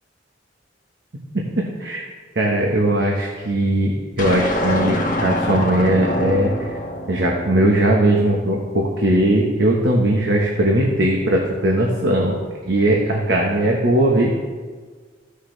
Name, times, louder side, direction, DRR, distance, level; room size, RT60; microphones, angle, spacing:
voice 1, 1.3-2.1 2.3-6.7 7.1-14.3, right 1 dB, 65° right, -1 dB, 1.2 m, -19 dB
sound 1, 4.2-8.6, left 1 dB, 45° left, 1.5 m, -25 dB
15.5 x 6.6 x 3.3 m, 1.5 s
head